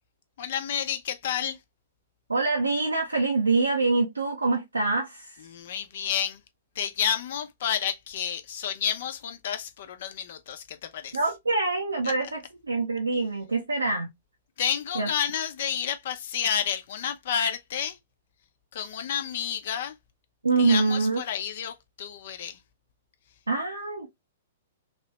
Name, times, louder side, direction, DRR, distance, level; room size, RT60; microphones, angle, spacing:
voice 1, 0.4-1.6 5.4-6.4 6.7-11.2 12.0-12.1 14.6-18.0 18.7-20.0 20.6-22.6, left 9 dB, 55° left, 0.7 m, -30 dB
voice 2, 2.3-5.4 11.1-14.1 14.9-15.1 20.4-21.2 23.5-24.1, right 3 dB, 85° right, 0.7 m, -25 dB
3.1 x 3.0 x 3.0 m
figure-of-eight pair, 110°, 0 cm